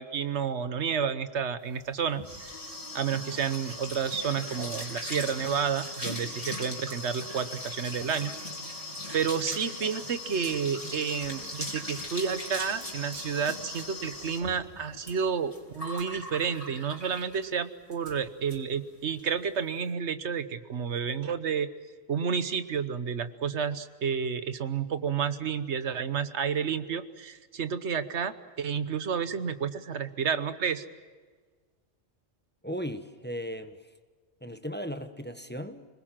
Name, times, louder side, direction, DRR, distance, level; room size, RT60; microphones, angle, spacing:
voice 1, 0.0-2.7 2.9-8.3 9.1-21.7 22.1-30.8, right 7 dB, 85° right, 12 dB, 1.4 m, -30 dB
sound 1, 1.8-17.5 17.9-18.2 18.5-18.6 18.9-19.2, left 1 dB, 30° left, 3.7 m, -39 dB
voice 2, 32.6-33.9 34.4-35.9, equal, 10° left, 8 dB, 1.1 m, -37 dB
27.0 x 20.0 x 7.6 m, 1.5 s
omnidirectional pair, 1.1 m